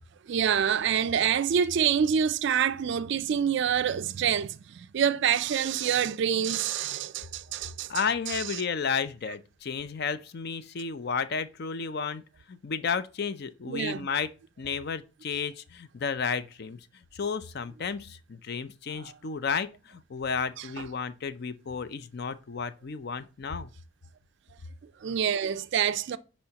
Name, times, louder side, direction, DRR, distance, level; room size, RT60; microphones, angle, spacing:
voice 1, 0.3-8.6 13.7-14.1 19.0-19.1 20.6-20.9 25.0-26.2, right 8 dB, 55° right, 0.3 m, -27 dB
voice 2, 7.9-12.2 12.5-14.3 14.6-16.8 17.1-23.7, left 5 dB, 50° left, 0.4 m, -32 dB
10.5 x 4.3 x 2.8 m
head